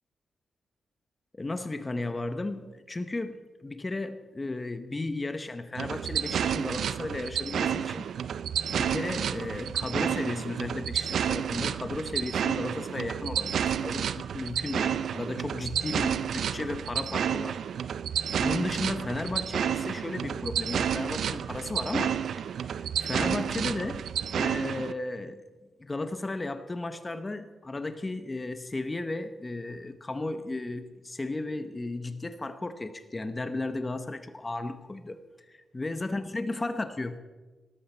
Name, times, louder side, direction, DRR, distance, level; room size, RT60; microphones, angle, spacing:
voice 1, 1.3-8.1 8.7-17.6 18.4-22.2 22.6-24.1 24.3-25.4 25.8-35.2 35.7-37.2, left 2 dB, 20° left, 10 dB, 0.9 m, -34 dB
sound 1, 5.8-24.9, right 8 dB, 70° right, 0.4 m, -30 dB
19.0 x 14.0 x 4.4 m, 1.3 s
wide cardioid pair, 165°, 0 cm